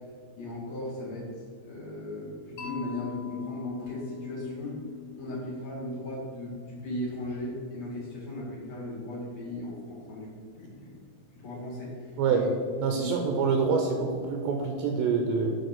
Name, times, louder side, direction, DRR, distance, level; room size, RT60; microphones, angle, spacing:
voice 1, 0.4-1.3 1.6-4.8 5.2-11.0 11.3-12.5 12.8-13.1, left 1 dB, 50° left, -5 dB, 2.8 m, -37 dB
Mallet percussion, 2.6-6.6, left 10 dB, 70° left, 1.8 m, -41 dB
voice 2, 12.8-15.6, right 5 dB, 80° right, 3 dB, 2.4 m, -26 dB
8.1 x 4.8 x 5.8 m, 2.1 s
omnidirectional pair, 4.4 m